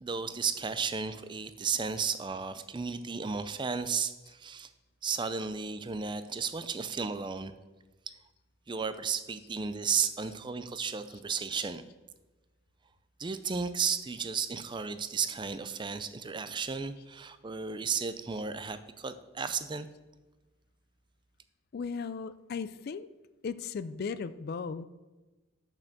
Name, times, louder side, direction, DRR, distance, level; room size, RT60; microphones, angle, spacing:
voice 1, 0.0-4.7 5.0-7.5 8.1-8.2 8.7-11.8 13.2-19.9, right 6 dB, 25° right, 12 dB, 0.4 m, -34 dB
voice 2, 21.7-23.1 23.4-24.8, left 5 dB, 50° left, 15 dB, 0.3 m, -36 dB
6.7 x 6.0 x 6.5 m, 1.1 s
head